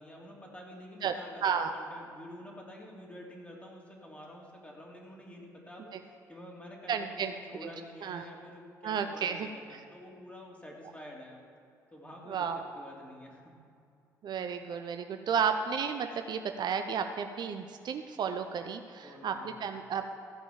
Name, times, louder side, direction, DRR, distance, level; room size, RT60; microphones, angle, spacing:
voice 1, 0.0-5.9 6.3-11.4 11.9-12.5 12.8-13.4 19.0-19.7, left 1 dB, 15° left, -2 dB, 3.6 m, -48 dB
voice 2, 1.4-1.7 5.9-6.0 6.9-7.3 7.6-7.7 8.0-8.3 8.8-9.5 12.3-12.6 14.2-20.1, right 7 dB, 50° right, 7 dB, 0.7 m, -32 dB
15.0 x 6.0 x 7.3 m, 2.4 s
hypercardioid pair, 50°, 9 cm